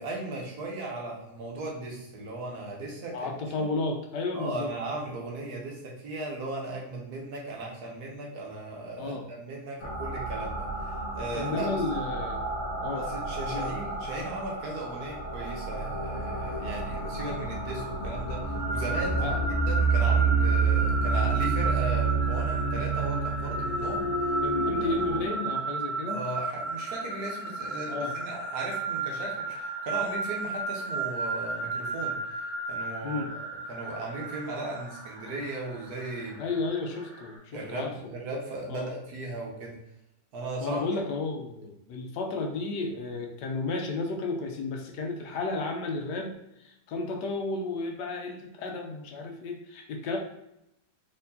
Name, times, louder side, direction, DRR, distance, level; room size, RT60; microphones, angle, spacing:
voice 1, 0.0-3.7 4.3-11.8 12.7-24.1 24.6-24.9 26.1-36.4 37.5-39.8 40.3-40.8, right 2 dB, 65° right, -1 dB, 1.4 m, -37 dB
voice 2, 3.1-4.7 9.0-9.3 11.3-12.5 12.8-13.1 13.5-13.7 19.2-19.5 24.4-26.2 27.9-28.2 33.0-33.3 36.4-37.9 38.7-38.9 40.6-46.3 46.6-50.2, left 3 dB, 75° left, 3 dB, 1.3 m, -32 dB
sound 1, 9.8-25.3, right 4 dB, 55° left, 1.8 m, -29 dB
sound 2, 18.5-37.3, right 3 dB, 40° right, 1.4 m, -34 dB
4.3 x 3.6 x 2.7 m, 0.85 s
omnidirectional pair, 1.8 m